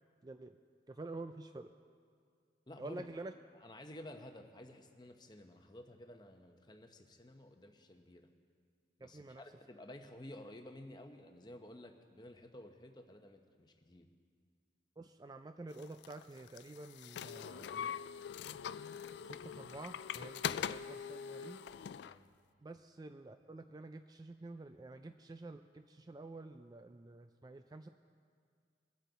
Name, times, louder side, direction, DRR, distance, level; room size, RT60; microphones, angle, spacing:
voice 1, 0.2-0.6 0.9-1.7 2.8-3.3 9.0-9.4 15.0-17.9 19.3-21.6 22.6-27.9, right 2 dB, 20° right, 8 dB, 0.3 m, -49 dB
voice 2, 2.7-3.1 3.5-8.3 9.0-14.1 22.0-22.3, left 1 dB, 25° left, 5 dB, 0.9 m, -53 dB
sound 1, 15.8-22.2, left 8 dB, 75° left, 0.3 m, -42 dB
23.5 x 8.2 x 4.0 m, 2.1 s
head